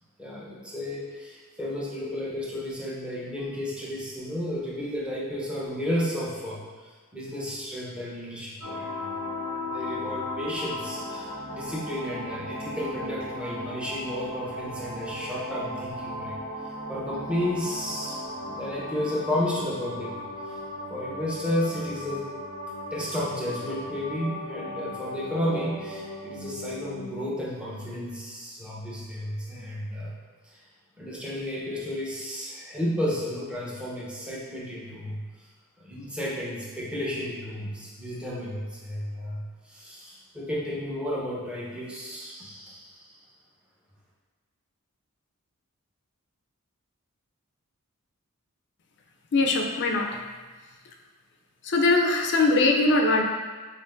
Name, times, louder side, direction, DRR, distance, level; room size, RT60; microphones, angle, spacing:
voice 1, 0.2-6.6 7.1-9.0 9.7-16.4 16.9-20.1 20.9-22.3 22.9-30.1 30.5-30.6 31.0-35.2 35.8-43.1, left 1 dB, 5° right, -7 dB, 0.7 m, -32 dB
sound 1, 8.6-27.1, left 1 dB, 85° right, 1.2 m, -36 dB
voice 2, 49.3-50.2 51.6-53.2, left 2 dB, 55° left, 2 dB, 0.4 m, -21 dB
5.5 x 2.5 x 2.5 m, 1.4 s
head